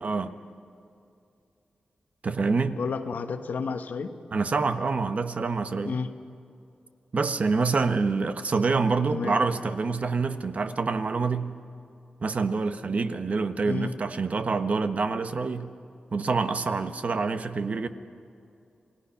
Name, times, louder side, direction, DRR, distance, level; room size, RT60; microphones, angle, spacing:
voice 1, 0.0-0.4 2.2-2.8 4.3-6.0 7.1-11.6 12.2-15.7 16.1-17.9, right 4 dB, 55° right, 9 dB, 1.1 m, -26 dB
voice 2, 2.7-4.1 5.8-6.1 9.1-9.4 13.7-13.9, left 5 dB, 90° left, 8 dB, 1.2 m, -31 dB
28.5 x 18.5 x 5.8 m, 2.6 s
wide cardioid pair, 85°, 3 cm